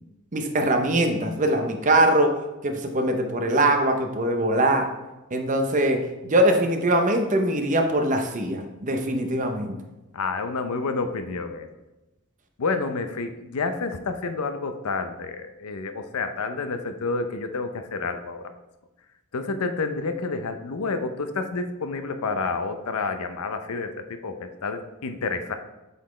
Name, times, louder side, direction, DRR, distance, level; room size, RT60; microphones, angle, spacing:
voice 1, 0.3-2.3 2.6-4.9 5.3-9.8, right 1 dB, 35° right, 5 dB, 0.7 m, -22 dB
voice 2, 10.1-11.7 12.6-18.5 19.3-25.5, left 4 dB, 85° left, 8 dB, 0.6 m, -29 dB
7.9 x 4.1 x 3.2 m, 1.0 s
head